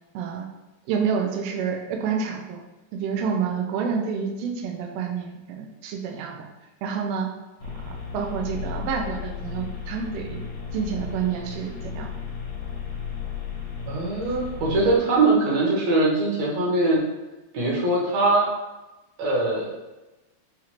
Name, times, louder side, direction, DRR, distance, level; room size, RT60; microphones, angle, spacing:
voice 1, 0.1-0.5 0.9-2.6 2.9-6.5 6.8-7.3 7.6-7.7 8.1-10.4 10.7-12.1, right 6 dB, 90° right, 3 dB, 1.4 m, -28 dB
sound 1, 7.6-15.0, left 6 dB, 80° left, 2.4 m, -34 dB
voice 2, 13.9-17.0 17.5-18.5 19.2-19.7, right 2 dB, 70° right, -4 dB, 2.0 m, -22 dB
5.8 x 2.5 x 2.9 m, 1.1 s
omnidirectional pair, 3.5 m